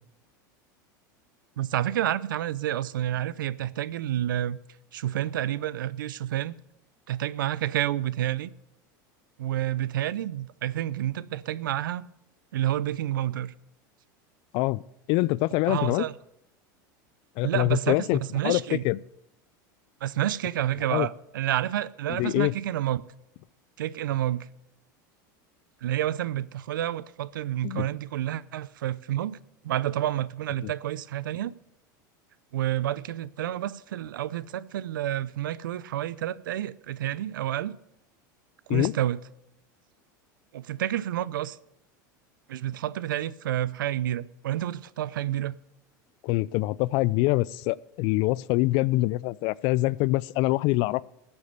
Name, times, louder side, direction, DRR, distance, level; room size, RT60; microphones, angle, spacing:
voice 1, 1.6-4.6 4.9-6.5 7.1-8.5 9.4-12.1 12.5-13.5 15.7-16.1 17.4-18.8 20.0-23.0 23.8-24.5 25.8-31.5 32.5-37.7 38.7-39.2 40.5-41.6 42.5-45.6, right 12 dB, 90° right, 0.5 m, -29 dB
voice 2, 15.1-16.0 17.4-19.0 20.9-21.1 22.1-22.5 27.6-27.9 30.6-30.7 38.7-38.9 46.2-51.0, left 19 dB, 55° left, 0.4 m, -25 dB
14.5 x 7.1 x 6.7 m
hypercardioid pair, 105°, 11 cm